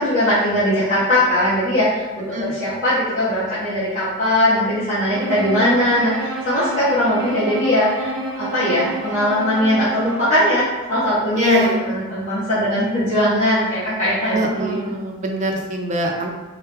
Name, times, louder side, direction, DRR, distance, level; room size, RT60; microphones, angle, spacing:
voice 1, 0.0-2.0 2.4-8.1 8.5-14.7, left 1 dB, 40° left, -13 dB, 1.1 m, -19 dB
Bowed string instrument, 5.1-10.5, right 1 dB, 90° right, 0.6 m, -29 dB
voice 2, 11.4-11.9 14.3-16.3, right 1 dB, 35° right, 0 dB, 0.5 m, -23 dB
4.4 x 2.1 x 3.4 m, 1.2 s
head